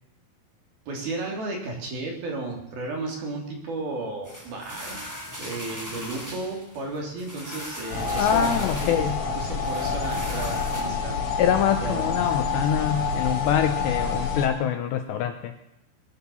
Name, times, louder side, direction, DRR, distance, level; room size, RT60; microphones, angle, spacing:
voice 1, 0.9-8.9 9.4-11.4 11.8-12.2, right 2 dB, 55° right, 0 dB, 4.6 m, -34 dB
sound 1, 4.2-10.8, equal, 5° right, 1.6 m, -39 dB
sound 2, 7.9-14.5, left 4 dB, 55° left, 3.9 m, -28 dB
voice 2, 8.2-9.2 11.4-15.5, left 9 dB, 75° left, 7 dB, 2.7 m, -24 dB
22.0 x 8.6 x 7.0 m, 0.84 s
omnidirectional pair, 5.7 m